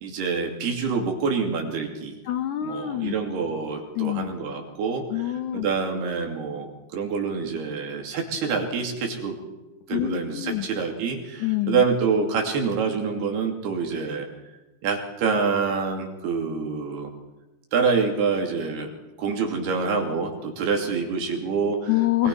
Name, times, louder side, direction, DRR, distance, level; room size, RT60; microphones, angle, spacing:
voice 1, 0.0-2.2 2.6-5.1 5.5-9.4 9.9-14.3 14.8-17.1 17.7-18.9 19.2-21.9 22.2-22.3, right 5 dB, 70° right, 2 dB, 4.6 m, -26 dB
voice 2, 2.2-3.1 3.9-4.3 5.1-5.7 9.9-10.7 11.4-11.8 21.9-22.3, left 14 dB, 80° left, 8 dB, 1.7 m, -26 dB
22.0 x 22.0 x 5.6 m, 1.0 s
omnidirectional pair, 4.8 m